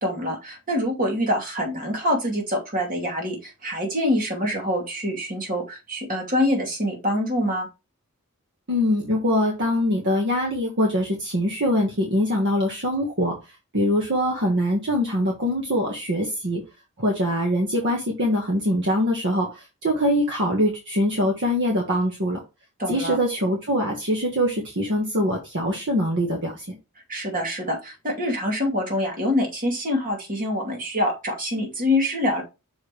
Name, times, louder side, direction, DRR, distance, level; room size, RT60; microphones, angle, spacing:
voice 1, 0.0-7.7 22.8-23.2 27.1-32.4, left 1 dB, 40° right, 0 dB, 2.5 m, -25 dB
voice 2, 8.7-13.4 13.7-16.6 17.0-22.4 22.9-26.8, equal, 55° right, 0 dB, 1.5 m, -23 dB
6.4 x 5.0 x 3.2 m, 0.26 s
head